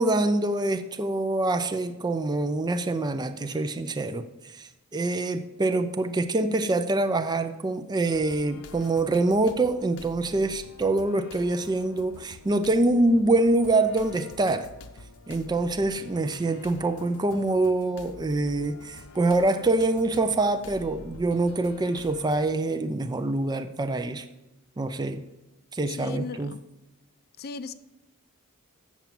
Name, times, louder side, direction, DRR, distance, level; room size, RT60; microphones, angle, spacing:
voice 1, 0.0-14.7 15.3-24.3 24.8-25.2 25.7-26.5, right 2 dB, 20° right, 0.4 m, -25 dB
sound 1, 8.0-22.5, left 2 dB, 80° left, 0.9 m, -48 dB
voice 2, 25.9-26.6 27.4-27.7, left 4 dB, 45° left, 0.5 m, -36 dB
7.2 x 6.9 x 7.5 m
head